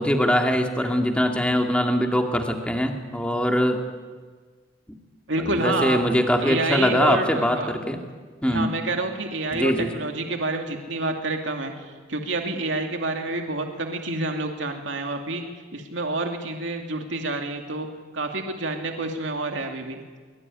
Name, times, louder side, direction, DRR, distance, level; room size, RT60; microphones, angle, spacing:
voice 1, 0.0-3.8 4.9-5.0 5.4-8.0 8.4-8.8 9.5-9.9, equal, 5° left, 3 dB, 2.4 m, -22 dB
voice 2, 5.3-6.0 6.4-7.7 8.5-17.9 18.1-20.0, right 2 dB, 65° right, 3 dB, 2.7 m, -28 dB
24.0 x 23.5 x 9.7 m, 1.5 s
head